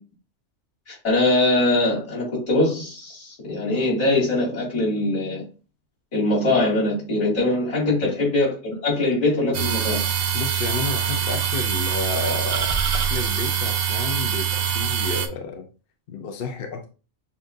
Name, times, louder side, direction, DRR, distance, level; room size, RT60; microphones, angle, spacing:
voice 1, 0.9-5.4 6.1-10.0, left 2 dB, 85° left, -7 dB, 3.2 m, -22 dB
voice 2, 7.8-8.1 10.3-15.7 16.1-16.9, left 5 dB, 55° left, 4 dB, 0.8 m, -31 dB
sound 1, 9.5-15.3, right 8 dB, 60° right, 0.8 m, -24 dB
7.1 x 2.5 x 2.6 m, 0.34 s
omnidirectional pair, 1.2 m